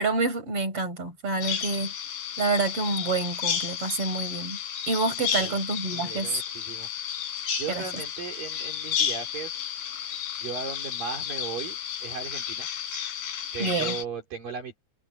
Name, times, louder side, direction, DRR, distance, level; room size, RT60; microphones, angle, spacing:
voice 1, 0.0-1.9 2.4-4.6 4.9-6.4 7.7-7.8 13.6-14.0, right 3 dB, 30° right, 7.2 m, -28 dB
Bird vocalization bird call bird song, 1.4-14.0, left 8 dB, 55° left, 4.4 m, -32 dB
voice 2, 5.2-5.6 5.9-6.9 7.2-9.6 10.4-12.7 13.5-14.8, right 6 dB, 50° right, 5.6 m, -37 dB
omnidirectional pair, 5.4 m